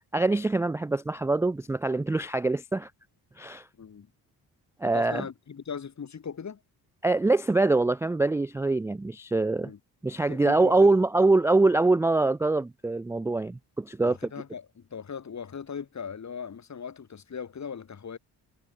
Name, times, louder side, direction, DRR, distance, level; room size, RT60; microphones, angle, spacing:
voice 1, 0.1-2.9 3.4-3.7 4.8-5.2 7.0-9.7 10.0-14.2, right 2 dB, 5° right, 0.3 m, -24 dB
voice 2, 4.8-6.6 9.6-9.8 10.3-10.9 14.0-18.2, left 6 dB, 45° left, 2.2 m, -39 dB
cardioid pair, 70°, 40 cm